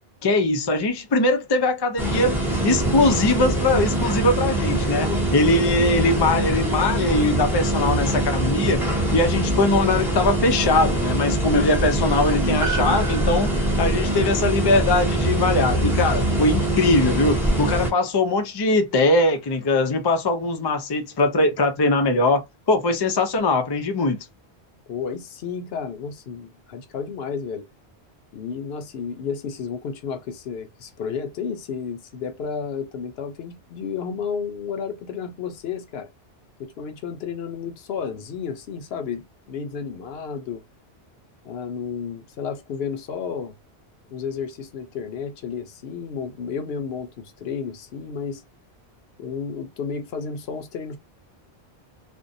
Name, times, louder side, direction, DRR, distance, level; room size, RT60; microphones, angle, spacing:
voice 1, 0.2-2.4 2.6-8.8 9.1-13.5 13.8-24.3, left 2 dB, 45° left, 0.3 m, -21 dB
sound 1, 2.0-17.9, right 1 dB, 5° right, 0.6 m, -23 dB
Piano, 12.6-17.2 17.5-17.6, right 5 dB, 55° right, 0.7 m, -36 dB
voice 2, 24.9-27.7 28.3-36.1 36.6-40.6 41.4-43.6 44.1-48.4 49.2-51.0, left 6 dB, 70° left, 0.8 m, -32 dB
2.5 x 2.1 x 2.6 m
omnidirectional pair, 1.1 m